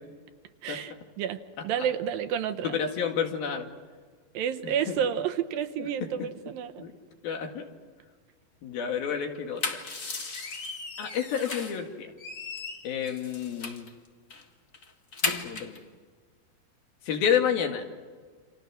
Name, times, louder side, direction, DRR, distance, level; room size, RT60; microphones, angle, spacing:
voice 1, 0.6-2.8 4.3-6.9, right 8 dB, 75° right, 7 dB, 2.6 m, -30 dB
voice 2, 2.6-3.7 4.6-5.0 5.8-5.9 6.8-6.9 7.2-7.6 8.6-9.6 11.0-12.1 12.8-13.9 15.3-15.8 17.0-17.9, left 8 dB, 70° left, 4 dB, 3.8 m, -30 dB
sound 1, 9.3-11.8 12.2-13.9 14.3-14.4 14.7-15.8, left 3 dB, 50° left, 0.9 m, -35 dB
29.5 x 27.5 x 6.3 m, 1.5 s
omnidirectional pair, 4.4 m